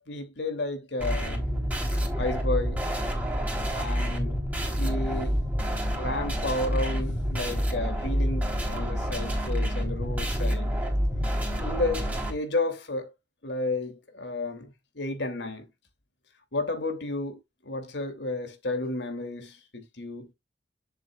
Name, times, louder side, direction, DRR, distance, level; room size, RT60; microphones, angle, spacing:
voice 1, 0.0-1.5 2.2-2.8 3.7-4.4 4.8-5.4 6.0-10.7 11.6-13.1 13.4-15.7 16.5-20.3, left 2 dB, 65° left, 2.7 m, -32 dB
sound 1, 1.0-12.3, equal, 10° right, 3.6 m, -28 dB
11.0 x 7.7 x 2.3 m
head